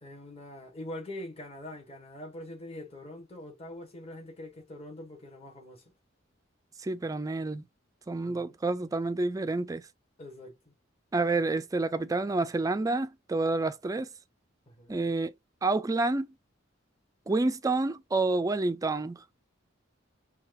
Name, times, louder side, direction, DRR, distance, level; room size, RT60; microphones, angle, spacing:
voice 1, 0.0-5.9 8.2-8.6 10.2-10.7 14.7-15.0, left 1 dB, 30° left, 1.2 m, -44 dB
voice 2, 6.8-7.6 8.1-9.8 11.1-14.1 14.9-15.3 15.6-16.3 17.3-19.2, right 3 dB, 15° right, 0.3 m, -28 dB
5.5 x 2.3 x 2.6 m
head